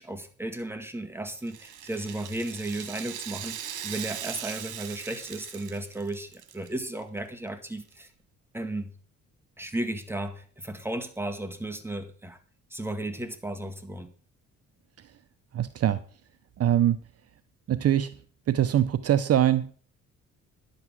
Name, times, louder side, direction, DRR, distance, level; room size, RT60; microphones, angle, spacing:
voice 1, 0.0-8.1 8.5-8.9 9.6-12.4 12.7-14.1, right 1 dB, 10° right, 7 dB, 1.8 m, -34 dB
Rattle (instrument), 1.4-6.7 7.0-7.1 7.9-8.0, right 10 dB, 85° right, 1.6 m, -39 dB
voice 2, 15.5-16.0 16.6-17.0 17.7-18.1 18.5-19.7, right 11 dB, 55° right, 13 dB, 0.7 m, -23 dB
11.0 x 8.1 x 6.1 m, 0.42 s
cardioid pair, 90°, 30 cm